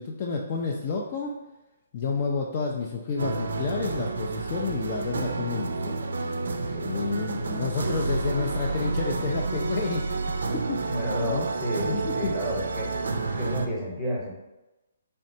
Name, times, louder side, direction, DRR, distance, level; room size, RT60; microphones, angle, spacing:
voice 1, 0.0-1.4 1.9-5.9 6.8-11.5 11.8-12.4, left 4 dB, 30° left, -1 dB, 0.3 m, -30 dB
sound 1, 3.2-13.7, right 3 dB, 80° right, 0.4 m, -30 dB
voice 2, 6.7-7.1 10.9-12.9 13.2-14.3, equal, ahead, -7 dB, 0.9 m, -31 dB
4.2 x 3.2 x 2.7 m, 1.0 s
hypercardioid pair, 165°, 0 cm